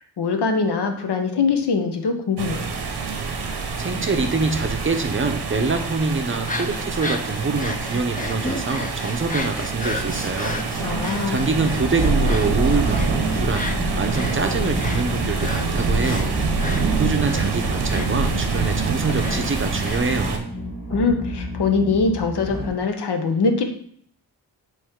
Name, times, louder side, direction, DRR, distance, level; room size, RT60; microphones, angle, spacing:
voice 1, 0.2-2.6 10.8-11.5 20.9-23.7, left 4 dB, 85° left, 5 dB, 0.9 m, -22 dB
sound 1, 2.4-20.4, right 4 dB, 80° right, 0.9 m, -25 dB
voice 2, 3.8-10.6 11.3-13.7 14.0-16.4 17.0-20.5, right 3 dB, 30° right, 6 dB, 0.6 m, -25 dB
sound 2, 6.3-20.0, left 2 dB, 20° left, 0.5 m, -34 dB
sound 3, 11.5-22.7, left 1 dB, 45° left, 2.3 m, -32 dB
8.4 x 3.2 x 3.6 m, 0.63 s
wide cardioid pair, 150°, 39 cm